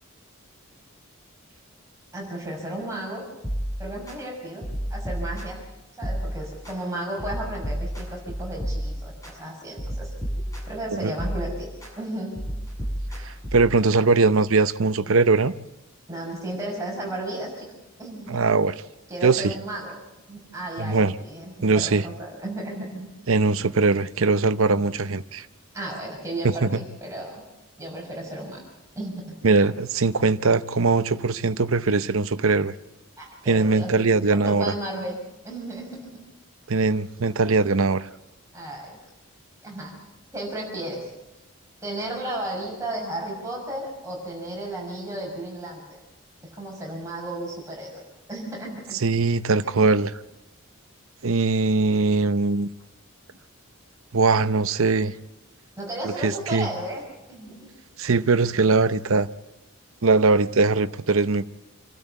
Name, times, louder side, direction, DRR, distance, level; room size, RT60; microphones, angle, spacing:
voice 1, 2.1-3.3 3.8-5.6 5.9-10.1 10.7-11.7 12.0-12.3 16.1-17.7 18.0-18.6 19.1-19.9 20.3-23.1 23.4-23.7 25.7-27.5 27.8-28.6 29.0-29.4 33.2-34.0 34.3-35.2 35.4-36.2 38.5-39.0 39.6-39.9 40.3-41.1 41.8-46.0 46.4-48.0 48.3-49.0 49.6-49.9 55.8-57.0 57.3-57.7, right 1 dB, 15° right, 6.0 m, -34 dB
sound 1, 3.4-4.2 4.6-5.7 6.0-6.8 7.2-9.3 9.8-10.8 11.2-11.9 12.3-13.8, equal, 15° left, 6.9 m, -31 dB
voice 2, 13.5-15.5 18.3-18.7 19.2-19.5 20.8-21.1 21.6-22.0 23.3-25.5 26.4-26.8 29.4-32.7 33.5-34.6 36.7-38.1 49.0-50.1 51.2-52.7 54.1-55.1 56.2-56.7 58.0-59.3 60.0-61.5, right 3 dB, 70° right, 0.8 m, -21 dB
27.5 x 12.5 x 8.3 m
head